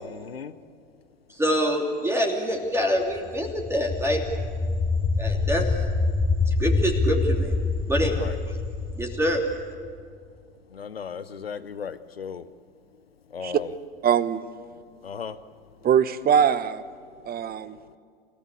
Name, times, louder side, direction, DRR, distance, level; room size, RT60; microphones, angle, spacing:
voice 1, 0.0-0.5 8.2-8.4 10.7-12.4 13.3-13.7 15.0-15.3, left 7 dB, 90° left, 13 dB, 0.7 m, -36 dB
voice 2, 1.4-4.2 5.2-5.7 6.5-7.5 7.9-8.2 9.0-9.4, equal, 10° right, 0 dB, 3.0 m, -25 dB
sound 1, 3.2-10.0, left 3 dB, 15° left, 2.6 m, -26 dB
voice 3, 14.0-14.4 15.8-16.8 17.3-17.8, right 8 dB, 30° right, 15 dB, 1.0 m, -22 dB
28.5 x 16.0 x 8.4 m, 2.1 s
figure-of-eight pair, 75°, 29 cm